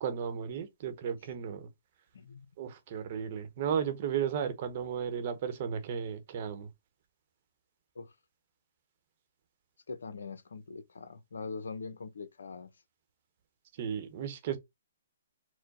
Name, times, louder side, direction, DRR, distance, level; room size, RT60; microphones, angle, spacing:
voice 1, 0.0-1.7 2.6-6.7 13.8-14.6, right 8 dB, 45° right, 0.9 m, -34 dB
voice 2, 2.1-2.5 8.0-8.1 9.9-12.7, left 4 dB, 75° left, 0.7 m, -42 dB
4.6 x 2.2 x 4.1 m
hypercardioid pair, 140°, 0 cm